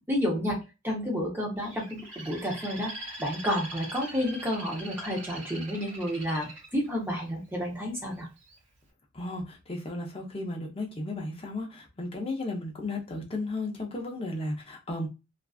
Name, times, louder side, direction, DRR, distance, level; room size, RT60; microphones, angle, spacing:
voice 1, 0.1-0.6 0.8-8.3, equal, 10° right, 0.7 m, -30 dB
Bird, 1.6-7.6 8.2-8.6, right 2 dB, 55° right, 1.2 m, -42 dB
voice 2, 9.1-15.1, left 2 dB, 25° left, 0.5 m, -34 dB
2.4 x 2.3 x 2.3 m
head